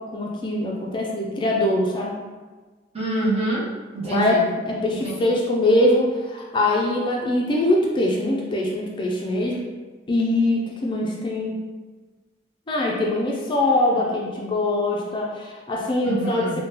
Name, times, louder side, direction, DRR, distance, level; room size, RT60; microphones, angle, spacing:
voice 1, 0.1-2.1 4.0-9.6 10.1-11.6 12.7-16.6, left 1 dB, 25° left, -2 dB, 0.4 m, -22 dB
voice 2, 2.9-4.5 4.9-5.3 16.0-16.6, right 2 dB, 35° right, -6 dB, 0.8 m, -26 dB
3.7 x 2.2 x 2.8 m, 1.3 s
head